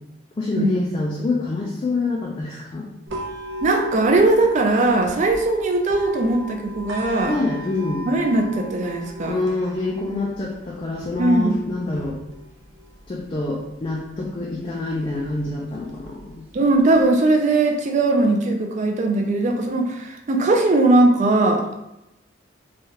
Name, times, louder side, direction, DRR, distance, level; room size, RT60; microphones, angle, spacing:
voice 1, 0.4-2.9 7.2-8.1 9.3-12.2 13.1-16.5, left 2 dB, 30° left, -2 dB, 0.3 m, -26 dB
sound 1, 3.1-17.1, equal, 85° right, 0.6 m, -37 dB
voice 2, 3.6-7.4 8.0-9.4 11.2-11.6 16.5-21.7, right 2 dB, 40° right, 3 dB, 0.4 m, -19 dB
3.1 x 2.3 x 2.8 m, 0.88 s
head